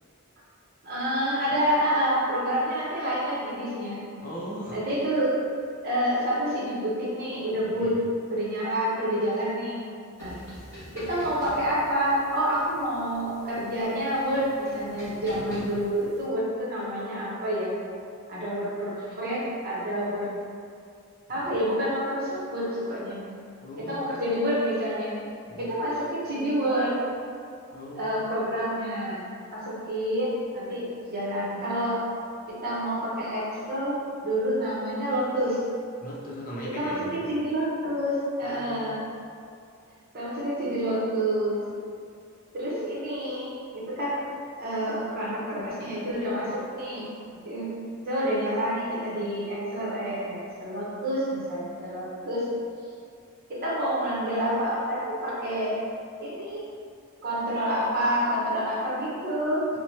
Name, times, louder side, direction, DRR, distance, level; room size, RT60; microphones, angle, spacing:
voice 1, 0.8-4.0 4.7-5.4 5.8-8.0 8.3-9.8 10.2-10.4 10.9-17.8 18.3-20.3 21.3-23.2 23.9-25.1 25.6-26.9 27.9-29.2 29.5-32.0 32.5-34.0 34.2-35.6 36.7-39.0 40.1-41.6 42.5-44.3 44.6-47.1 47.3-47.7 48.0-52.4 53.6-55.8 56.2-56.6 57.2-59.7, equal, 45° right, -7 dB, 0.8 m, -28 dB
voice 2, 4.2-4.8 7.6-8.0 21.3-21.5 23.6-24.2 25.5-25.7 27.7-28.3 36.0-37.2 38.4-38.9 59.7-59.8, equal, 40° left, -6 dB, 0.6 m, -39 dB
sound 1, 10.2-16.2, equal, 15° left, 1.2 m, -44 dB
3.0 x 2.1 x 4.1 m, 2.4 s
head